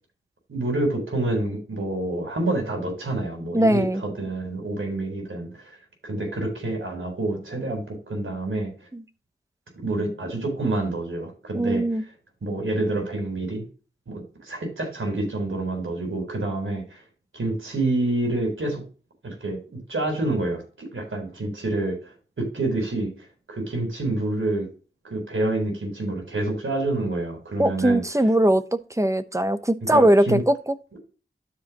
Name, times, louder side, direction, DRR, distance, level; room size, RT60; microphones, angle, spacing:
voice 1, 0.5-5.8 6.0-8.7 9.8-11.8 12.4-13.6 14.1-17.0 17.3-18.8 19.2-23.1 23.5-24.7 25.0-28.0 29.9-30.4, right 2 dB, 80° right, 4.0 m, -28 dB
voice 2, 3.5-4.0 8.9-9.0 11.5-12.0 27.6-30.7, right 1 dB, 15° right, 0.9 m, -20 dB
12.5 x 5.0 x 2.9 m
cardioid pair, 45°, 20 cm